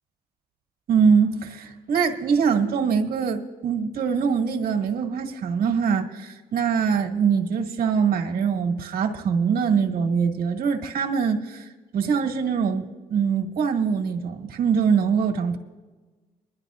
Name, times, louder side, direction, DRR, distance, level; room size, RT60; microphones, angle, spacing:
voice 1, 0.9-15.6, right 6 dB, 65° right, 3 dB, 1.8 m, -23 dB
24.0 x 11.5 x 2.5 m, 1.3 s
supercardioid pair, 60°, 16 cm